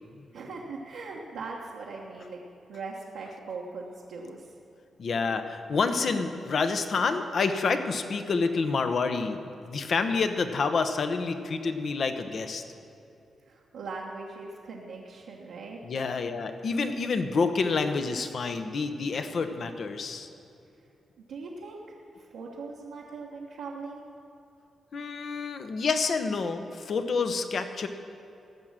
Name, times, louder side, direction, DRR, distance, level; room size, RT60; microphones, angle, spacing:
voice 1, 0.3-2.4 2.7-4.5 13.4-15.8 21.2-21.8 22.2-24.0, right 4 dB, 90° right, -5 dB, 1.2 m, -40 dB
voice 2, 5.0-12.6 15.8-20.3 24.9-27.9, left 4 dB, 65° left, 8 dB, 0.9 m, -28 dB
15.0 x 6.2 x 7.3 m, 2.7 s
cardioid pair, 65°, 0 cm